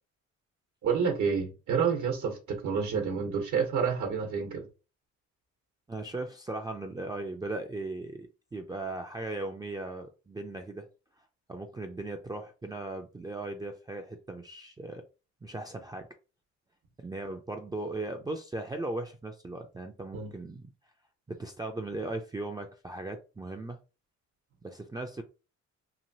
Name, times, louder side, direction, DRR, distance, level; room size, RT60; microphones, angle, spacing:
voice 1, 0.8-4.6 20.1-20.3, right 6 dB, 70° right, 0.9 m, -29 dB
voice 2, 5.9-10.9 11.5-15.0 15.4-16.1 17.0-20.7 21.3-23.8 24.6-25.2, right 2 dB, 15° right, 0.4 m, -38 dB
3.0 x 2.5 x 2.7 m
cardioid pair, 90°, 30 cm